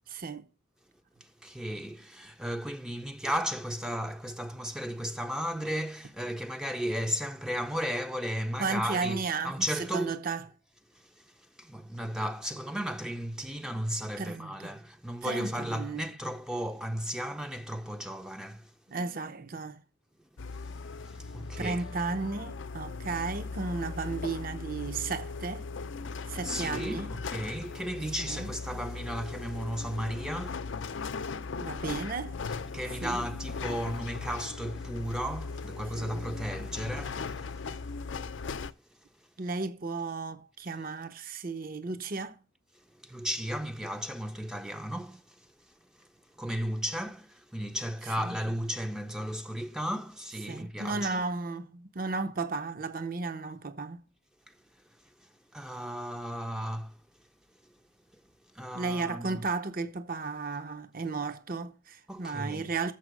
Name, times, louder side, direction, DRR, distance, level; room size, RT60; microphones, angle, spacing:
voice 1, 0.1-0.5 8.6-10.4 14.2-14.7 15.2-16.1 18.9-19.8 21.6-25.7 26.2-27.1 28.2-28.5 31.6-32.4 33.0-33.2 35.9-36.2 39.4-42.4 48.2-48.4 50.5-54.0 58.7-62.9, right 4 dB, 50° right, 0.8 m, -34 dB
voice 2, 1.2-10.1 11.0-11.2 11.6-18.7 21.1-21.8 26.4-30.6 32.7-37.5 43.0-45.4 46.0-46.1 46.4-51.2 54.5-54.6 55.5-57.0 58.5-59.4 62.1-62.7, equal, 5° right, 0.5 m, -35 dB
sound 1, 20.4-38.7, left 4 dB, 75° left, 0.5 m, -38 dB
7.2 x 5.7 x 6.2 m
head